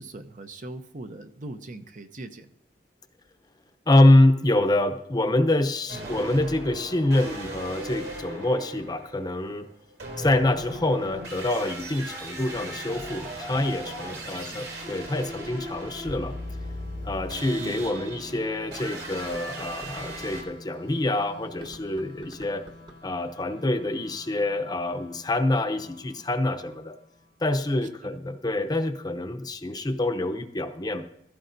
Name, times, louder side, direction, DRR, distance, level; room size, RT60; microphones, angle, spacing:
voice 1, 0.0-2.5 5.9-6.2 14.2-14.7 17.6-17.8 28.0-28.2, right 2 dB, 45° right, 7 dB, 0.7 m, -41 dB
voice 2, 3.9-9.7 10.2-16.4 17.0-22.6 23.0-26.9 27.4-31.1, left 1 dB, 25° left, 8 dB, 0.7 m, -25 dB
sound 1, 5.9-20.4, right 1 dB, 80° right, 3.1 m, -38 dB
sound 2, 12.3-27.7, left 2 dB, 90° left, 1.1 m, -49 dB
sound 3, 17.0-17.1 17.7-17.8 19.0-20.2 21.5-23.2, right 1 dB, 25° right, 1.1 m, -48 dB
15.5 x 13.5 x 2.7 m, 0.74 s
head